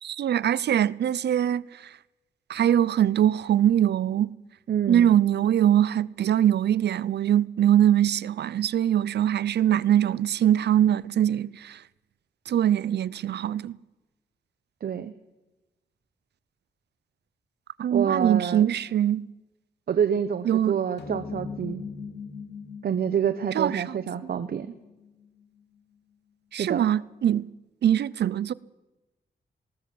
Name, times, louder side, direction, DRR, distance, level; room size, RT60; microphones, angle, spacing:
voice 1, 0.0-1.9 2.5-4.3 4.9-11.8 12.5-13.8 17.8-19.3 20.5-20.8 23.5-24.0 26.5-27.5 27.8-28.5, right 10 dB, 85° right, 0.6 m, -22 dB
voice 2, 4.7-5.2 14.8-15.1 17.9-18.7 19.9-21.8 22.8-24.7 26.5-26.9, right 8 dB, 65° right, 1.0 m, -27 dB
sound 1, 21.0-25.6, left 5 dB, 85° left, 2.9 m, -40 dB
19.5 x 19.0 x 7.7 m
wide cardioid pair, 155°, 17 cm